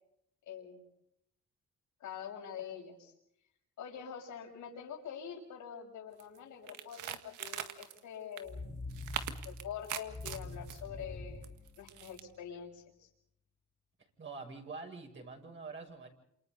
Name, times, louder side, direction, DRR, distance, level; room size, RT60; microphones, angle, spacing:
voice 1, 0.4-0.8 2.0-3.1 3.8-8.6 9.3-11.4 11.8-13.1, left 8 dB, 75° left, 1 dB, 6.6 m, -45 dB
sound 1, 6.2-6.4 6.7-8.0 8.4-8.5 8.9-10.8 11.4-12.2, right 10 dB, 85° right, 1.9 m, -41 dB
sound 2, 8.5-12.5, left 2 dB, 30° left, 2.7 m, -45 dB
voice 2, 14.2-16.1, right 4 dB, 40° right, 1 dB, 7.2 m, -45 dB
28.5 x 28.5 x 4.1 m, 0.74 s
cardioid pair, 90°, 30 cm